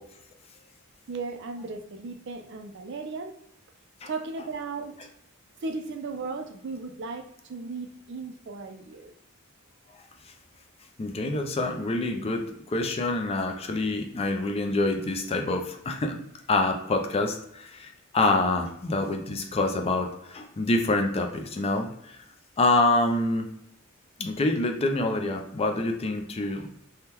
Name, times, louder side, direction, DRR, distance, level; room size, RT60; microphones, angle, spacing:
voice 1, 1.1-3.3 4.1-5.0 5.6-9.1, right 3 dB, 55° right, 5 dB, 0.4 m, -36 dB
voice 2, 11.0-16.2 16.5-22.2 22.6-23.5 24.2-26.7, left 2 dB, 30° left, 4 dB, 0.4 m, -26 dB
3.5 x 2.2 x 2.9 m, 0.75 s
head